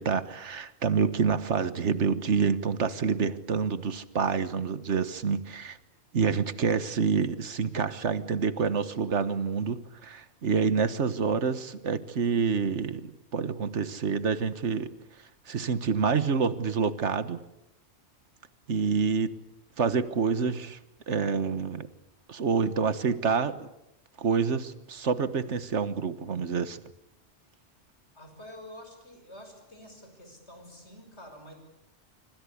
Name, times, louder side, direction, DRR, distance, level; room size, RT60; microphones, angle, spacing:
voice 1, 0.0-5.8 6.1-14.9 15.5-17.4 18.7-19.3 19.8-20.8 21.1-21.9 22.3-23.7 24.2-26.8, right 5 dB, 85° right, 13 dB, 1.6 m, -27 dB
voice 2, 28.1-31.5, left 1 dB, 75° left, 5 dB, 6.6 m, -48 dB
26.5 x 25.5 x 8.6 m, 0.87 s
omnidirectional pair, 1.2 m